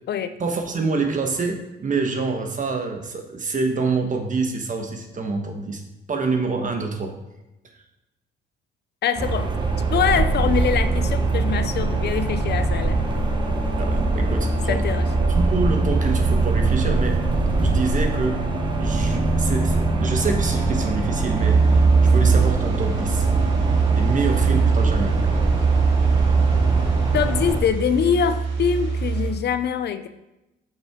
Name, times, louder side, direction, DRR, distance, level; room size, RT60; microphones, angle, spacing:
voice 1, 0.4-5.8 6.1-7.1 13.7-14.8 15.3-17.2 17.6-18.4 18.8-23.3 23.9-25.4, right 4 dB, 40° right, 4 dB, 1.3 m, -26 dB
voice 2, 9.0-9.5 9.9-13.0 14.7-15.0 27.1-30.1, left 7 dB, 55° left, 10 dB, 0.5 m, -23 dB
sound 1, 9.2-27.6, right 3 dB, 25° right, 1.2 m, -22 dB
sound 2, 21.3-29.3, right 5 dB, 80° right, 1.8 m, -21 dB
7.4 x 6.1 x 3.7 m, 0.95 s
cardioid pair, 90°, 20 cm